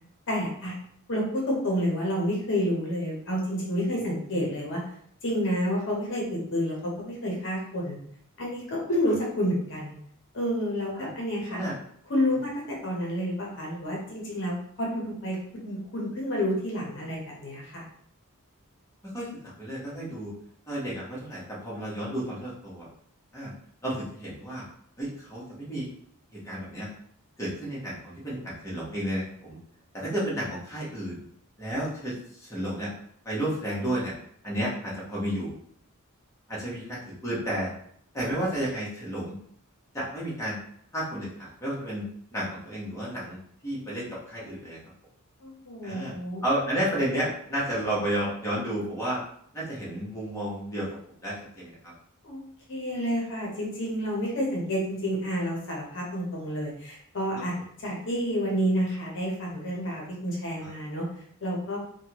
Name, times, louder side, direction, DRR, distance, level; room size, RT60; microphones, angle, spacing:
voice 1, 0.3-0.8 1.1-4.8 5.2-8.0 8.4-9.9 10.3-11.6 12.1-17.8 45.4-46.4 52.2-52.4 52.7-57.5 57.8-61.1 61.4-61.8, equal, 60° left, -2 dB, 0.8 m, -29 dB
voice 2, 19.6-20.3 20.7-22.9 23.3-23.5 23.8-24.6 25.0-25.9 26.3-26.9 27.4-29.6 29.9-31.2 31.6-32.9 33.2-34.1 34.4-35.5 36.5-37.7 38.1-39.4 39.9-40.6 40.9-42.0 42.3-43.4 43.6-44.8 45.8-46.1 46.4-49.2 49.5-50.9 51.2-51.9 57.3-57.4 60.6-60.7, right 1 dB, 15° left, -7 dB, 1.0 m, -32 dB
3.3 x 2.2 x 2.9 m, 0.64 s
head